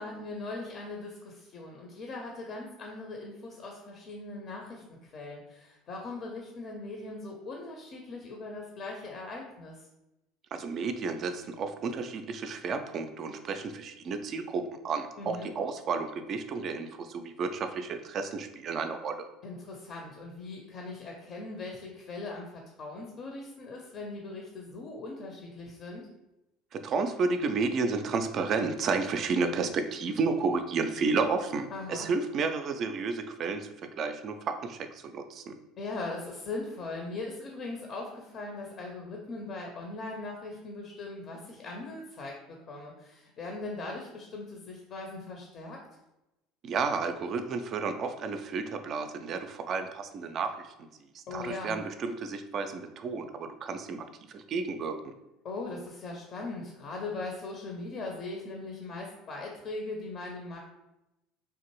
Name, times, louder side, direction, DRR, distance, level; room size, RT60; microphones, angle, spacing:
voice 1, 0.0-9.9 15.2-15.5 19.4-26.1 31.7-32.1 35.8-45.8 51.3-51.8 55.4-60.6, left 3 dB, 45° left, 0 dB, 0.5 m, -40 dB
voice 2, 10.5-19.3 26.7-33.7 34.0-34.8 35.0-35.6 46.6-50.5 51.3-55.0, right 4 dB, 40° right, 8 dB, 0.3 m, -31 dB
3.4 x 2.5 x 3.0 m, 0.94 s
figure-of-eight pair, 65°, 0 cm